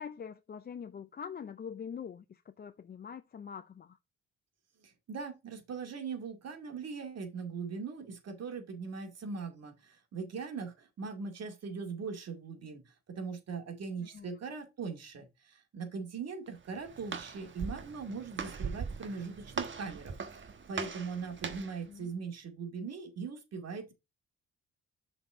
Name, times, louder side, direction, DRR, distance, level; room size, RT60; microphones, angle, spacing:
voice 1, 0.0-4.0 14.0-14.4 21.9-22.1, left 7 dB, 35° left, 0.5 m, -44 dB
voice 2, 4.8-23.9, right 5 dB, 55° right, 2.2 m, -40 dB
Walk footsteps, 16.5-21.8, right 5 dB, 40° right, 1.3 m, -40 dB
6.7 x 4.3 x 4.8 m
cardioid pair, 90°, 30 cm